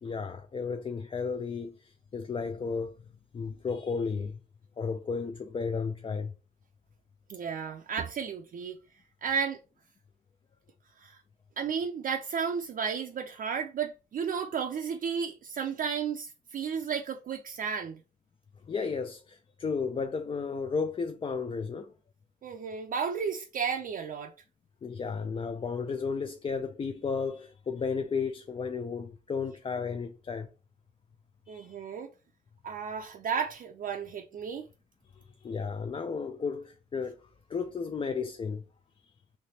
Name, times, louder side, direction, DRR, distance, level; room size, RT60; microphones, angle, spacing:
voice 1, 0.0-3.0 3.3-4.4 4.8-6.3 18.7-21.9 24.8-30.5 31.5-31.8 35.2-38.6, left 5 dB, 30° left, 0.4 m, -33 dB
voice 2, 7.3-8.8 9.2-9.6 11.0-11.2 11.6-18.0 22.4-24.3 31.5-32.1 32.6-34.7, right 6 dB, 50° right, 0.5 m, -33 dB
3.3 x 2.9 x 2.8 m
supercardioid pair, 55°, 18 cm